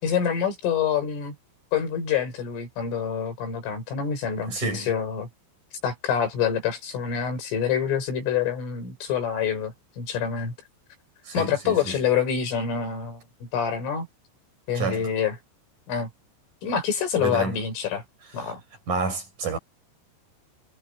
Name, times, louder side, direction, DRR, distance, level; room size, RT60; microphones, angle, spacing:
voice 1, 0.0-1.4 1.7-5.3 5.8-10.5 11.3-14.1 14.7-15.4 15.9-16.1 16.6-18.0 18.3-18.6, left 7 dB, 75° left, 8.1 m, -26 dB
voice 2, 4.5-4.9 11.3-12.0 14.7-15.1 17.2-17.6 18.9-19.6, right 4 dB, 40° right, 7.1 m, -29 dB
omnidirectional pair, 5.8 m